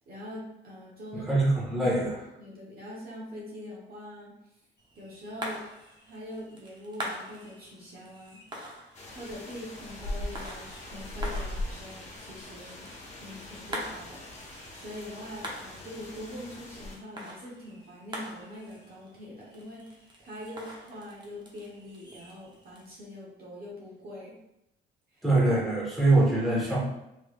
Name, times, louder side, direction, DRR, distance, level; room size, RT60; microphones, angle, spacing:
voice 1, 0.1-1.3 2.4-4.3 4.9-5.6 6.1-8.4 9.1-12.9 13.2-24.4 25.1-25.2, left 1 dB, 50° right, -4 dB, 1.2 m, -43 dB
voice 2, 1.1-2.2 25.2-26.8, right 2 dB, ahead, -7 dB, 1.4 m, -24 dB
sound 1, 4.8-22.9, equal, 20° right, 0.9 m, -44 dB
sound 2, 8.9-17.0, left 1 dB, 35° left, 1.0 m, -40 dB
3.3 x 3.2 x 2.5 m, 0.86 s
cardioid pair, 90°, 20 cm